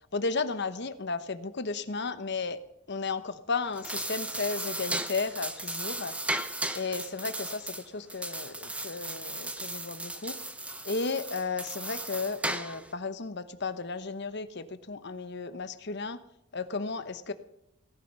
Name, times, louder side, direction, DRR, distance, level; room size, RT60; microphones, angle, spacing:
voice 1, 0.1-2.6 2.9-6.2 6.7-10.4 10.8-16.2 16.5-17.3, left 4 dB, 55° left, 11 dB, 1.0 m, -34 dB
sound 1, 3.6-12.9, right 1 dB, 5° right, 0.9 m, -36 dB
17.5 x 12.0 x 5.5 m, 0.84 s
head